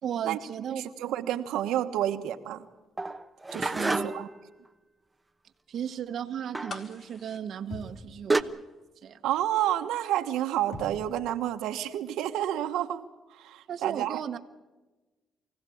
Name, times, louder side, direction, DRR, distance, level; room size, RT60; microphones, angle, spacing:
voice 1, 0.0-0.8 3.7-4.3 5.7-8.6 9.0-9.2 13.7-14.6, right 8 dB, 65° right, 6 dB, 1.1 m, -35 dB
voice 2, 0.7-2.6 3.5-4.2 9.2-13.0 13.3-14.2, right 12 dB, 90° right, 6 dB, 1.2 m, -30 dB
sound 1, 3.0-4.4 6.5-6.9 7.8-7.9 8.3-8.4, right 2 dB, 15° right, 1.0 m, -28 dB
sound 2, 6.7-8.7 9.0-9.1, left 4 dB, 45° left, 1.6 m, -45 dB
sound 3, 7.7-8.2 10.7-11.3, left 1 dB, 75° left, 4.2 m, -42 dB
24.5 x 16.5 x 8.5 m, 1.1 s
cardioid pair, 90°, 0 cm